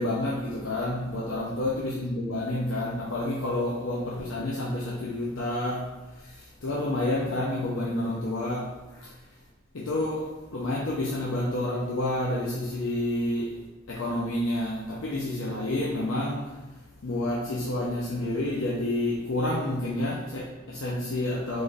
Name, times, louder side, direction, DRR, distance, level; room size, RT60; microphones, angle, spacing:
voice 1, 0.0-9.2 9.7-13.5 13.9-16.6 17.0-21.6, left 1 dB, 80° left, -4 dB, 0.7 m, -29 dB
4.7 x 4.2 x 2.5 m, 1.2 s
head